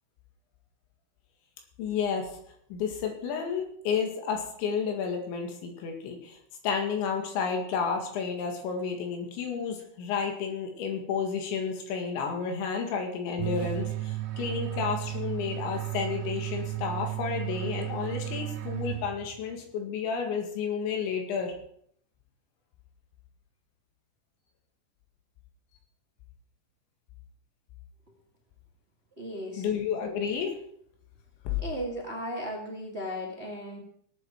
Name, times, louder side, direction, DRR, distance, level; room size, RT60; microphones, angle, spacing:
voice 1, 1.8-2.4 2.7-6.4 6.6-21.5 29.6-30.6 31.5-31.6, left 6 dB, 85° left, 3 dB, 4.3 m, -31 dB
sound 1, 13.4-19.5, right 16 dB, 75° right, 2.2 m, -34 dB
voice 2, 29.2-29.6 31.6-33.8, equal, 25° right, -2 dB, 1.3 m, -36 dB
18.5 x 8.8 x 4.6 m, 0.66 s
omnidirectional pair, 5.1 m